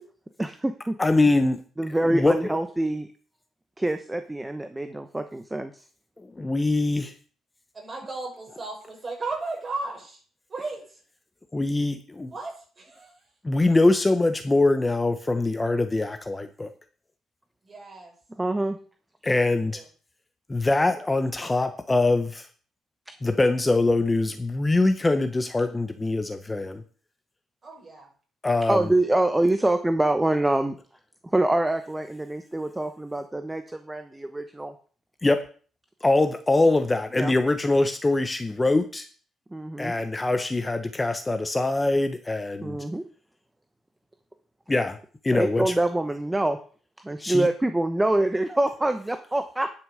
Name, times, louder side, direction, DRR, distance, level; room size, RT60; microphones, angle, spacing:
voice 1, 0.4-1.0 1.8-3.1 3.8-5.8 18.4-18.8 23.1-23.2 28.7-30.8 31.3-34.7 37.2-37.3 39.5-39.9 42.6-43.0 45.3-46.6 47.0-49.7, right 1 dB, 10° right, 9 dB, 1.0 m, -25 dB
voice 2, 1.0-1.6 2.0-2.6 6.4-7.1 11.5-12.3 13.4-16.7 19.2-19.8 20.5-22.5 23.2-26.8 28.4-28.9 35.2-35.4 36.0-39.1 39.8-42.8 44.7-45.0 45.2-45.7 47.2-47.5, left 2 dB, 20° left, 8 dB, 1.0 m, -23 dB
voice 3, 7.7-10.2 10.5-10.8 12.3-13.2 17.6-18.1 19.7-19.8 27.6-28.1, right 3 dB, 35° right, -1 dB, 6.2 m, -35 dB
11.0 x 6.3 x 6.5 m, 0.41 s
cardioid pair, 90°, 0 cm